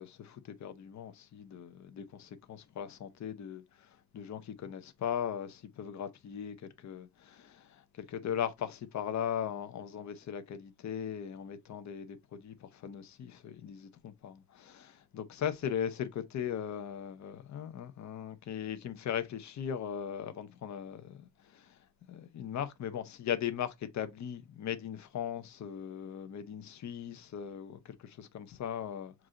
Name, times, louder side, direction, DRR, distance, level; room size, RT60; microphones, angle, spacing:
voice 1, 0.0-21.7 22.1-29.1, left 9 dB, 45° left, 0.7 m, -39 dB
4.7 x 2.5 x 3.7 m
cardioid pair, 145°, 40 cm